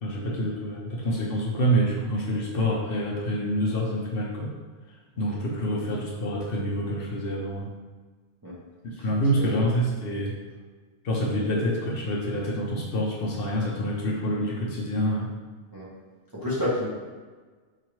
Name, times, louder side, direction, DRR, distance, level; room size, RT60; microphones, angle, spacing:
voice 1, 0.0-4.5 5.2-7.7 9.0-10.3 11.0-15.3, equal, 60° left, -4 dB, 0.8 m, -27 dB
voice 2, 16.3-16.9, left 1 dB, 25° right, -7 dB, 0.6 m, -30 dB
4.7 x 2.5 x 3.0 m, 1.4 s
omnidirectional pair, 1.2 m